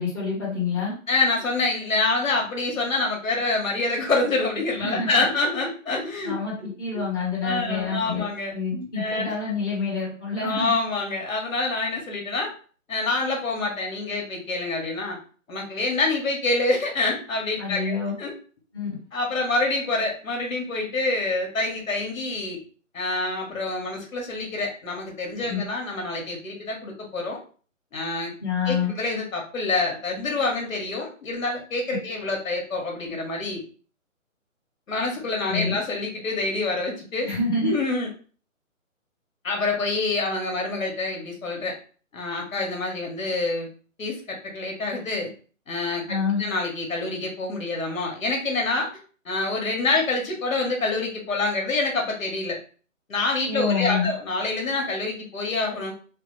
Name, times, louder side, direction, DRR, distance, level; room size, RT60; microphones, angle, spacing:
voice 1, 0.0-0.9 4.8-5.2 6.2-8.2 8.5-10.8 17.6-18.1 18.7-18.9 25.5-25.6 28.4-28.9 35.5-35.7 37.2-37.7 46.1-46.4 53.5-54.1, left 4 dB, 15° left, -10 dB, 1.0 m, -27 dB
voice 2, 1.1-7.1 7.4-8.5 9.0-9.3 10.4-12.5 12.9-15.2 15.5-18.3 19.1-22.6 22.9-27.4 27.9-28.3 28.7-33.6 34.9-37.3 37.6-38.1 39.4-41.7 42.1-43.7 44.0-45.3 45.7-48.9 49.2-52.6 53.1-55.9, left 3 dB, 70° left, 0 dB, 1.4 m, -26 dB
4.0 x 2.0 x 3.1 m, 0.40 s
hypercardioid pair, 165°, 41 cm